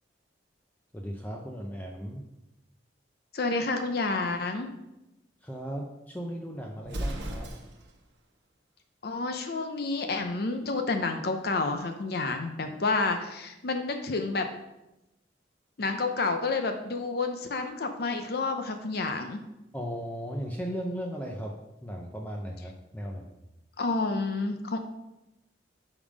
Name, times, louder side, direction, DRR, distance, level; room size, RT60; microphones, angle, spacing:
voice 1, 0.9-2.2 5.4-7.5 19.7-21.5 21.8-23.3, equal, 10° left, 0 dB, 0.5 m, -36 dB
voice 2, 3.3-4.7 9.0-14.5 15.8-19.4 23.8-24.8, left 3 dB, 55° left, 6 dB, 0.6 m, -29 dB
Explosion, 6.8-8.0, right 1 dB, 70° right, 1.0 m, -35 dB
5.3 x 5.0 x 5.1 m, 0.92 s
head